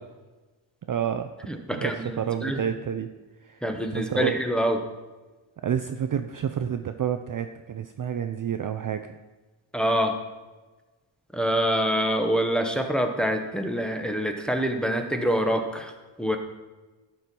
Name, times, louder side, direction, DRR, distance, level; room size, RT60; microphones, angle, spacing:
voice 1, 0.9-1.3 1.8-3.1 3.4-3.6 3.9-4.4 5.6-9.2, right 8 dB, 45° right, 8 dB, 0.5 m, -29 dB
voice 2, 1.5-2.6 3.6-4.8 9.7-10.2 11.3-15.9 16.2-16.4, equal, ahead, 4 dB, 0.9 m, -25 dB
12.5 x 4.6 x 5.3 m, 1.2 s
wide cardioid pair, 125°, 48 cm